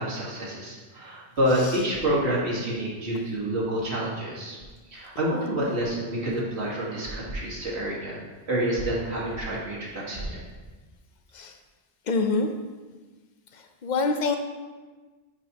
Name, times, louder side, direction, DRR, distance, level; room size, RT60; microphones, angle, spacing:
voice 1, 0.0-4.6 4.9-8.2 8.5-10.4, right 1 dB, 80° right, -5 dB, 2.0 m, -28 dB
voice 2, 12.0-12.5 13.5-14.4, left 4 dB, 50° left, 6 dB, 0.7 m, -26 dB
9.4 x 5.0 x 2.9 m, 1.3 s
omnidirectional pair, 1.1 m